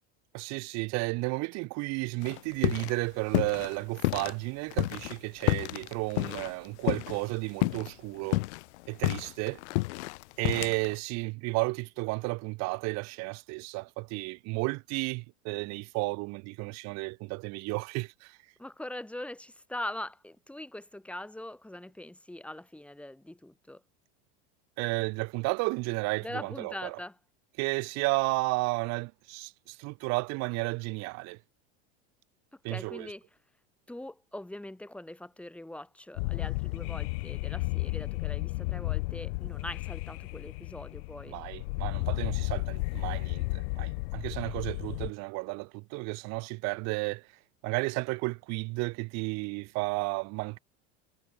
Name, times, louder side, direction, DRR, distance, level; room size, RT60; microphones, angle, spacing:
voice 1, 0.3-8.4 8.9-9.6 10.4-18.4 24.8-27.0 27.6-31.4 32.6-33.1 41.3-47.3 47.6-50.6, right 27 dB, 50° right, 1.6 m, -33 dB
sound 1, 2.2-3.0 3.3-4.3 4.7-7.3 7.6-7.9 8.2-10.9, left 22 dB, 90° left, 0.5 m, -30 dB
voice 2, 18.6-23.8 26.2-27.2 32.7-33.2 33.9-41.4, left 1 dB, 5° left, 6.9 m, -42 dB
sound 2, 36.2-45.1, left 27 dB, 70° left, 3.4 m, -33 dB
supercardioid pair, 140°, 33 cm